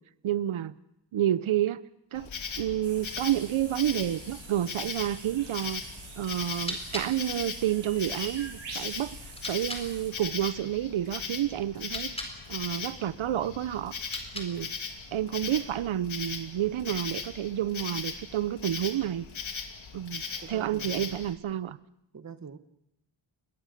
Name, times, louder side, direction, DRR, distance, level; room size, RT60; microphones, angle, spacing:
voice 1, 0.2-0.7 1.1-1.8 2.1-2.3 2.6-5.8 6.2-13.9 14.3-14.7 15.1-19.3 19.9-20.2 20.5-21.8, right 11 dB, 85° right, 0.8 m, -30 dB
Insect, 2.1-21.3, left 6 dB, 80° left, 2.8 m, -39 dB
sound 1, 2.8-10.1, right 4 dB, 70° right, 7.4 m, -46 dB
sound 2, 6.5-9.9 11.7-12.4 13.9-14.8, left 1 dB, 10° left, 4.3 m, -41 dB
voice 2, 20.4-21.2 22.1-22.6, right 6 dB, 35° right, 1.2 m, -44 dB
27.5 x 21.5 x 6.6 m
wide cardioid pair, 180°, 46 cm